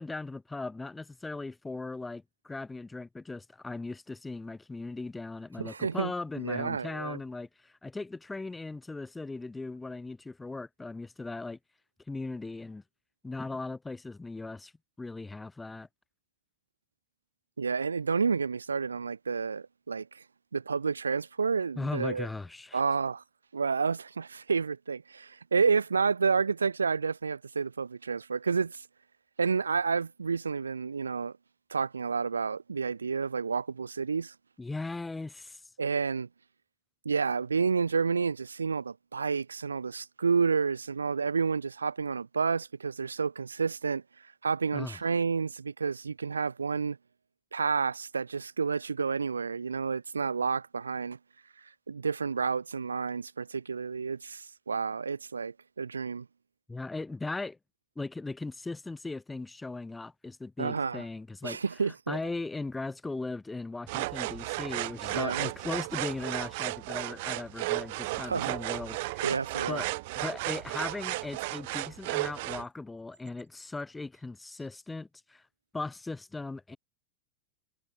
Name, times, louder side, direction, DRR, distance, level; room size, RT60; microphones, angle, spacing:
voice 1, 0.0-11.6 12.1-12.8 13.2-14.7 15.0-15.9 21.8-22.8 34.6-35.6 44.7-45.0 56.7-57.6 58.0-61.6 62.1-69.3 69.7-69.9 70.2-75.4 75.7-76.8, left 3 dB, 10° left, 4.0 m, -38 dB
voice 2, 5.6-7.2 17.6-20.2 20.5-22.3 22.7-23.2 23.5-28.9 29.4-31.3 31.7-34.3 35.8-36.3 37.1-47.0 47.5-51.2 51.9-56.3 60.6-61.0 61.4-62.2 65.1-65.5 68.2-68.5 69.2-69.8, right 5 dB, 75° right, 1.8 m, -30 dB
sound 1, 63.9-72.6, right 22 dB, 50° right, 0.6 m, -34 dB
figure-of-eight pair, 90°, 0 cm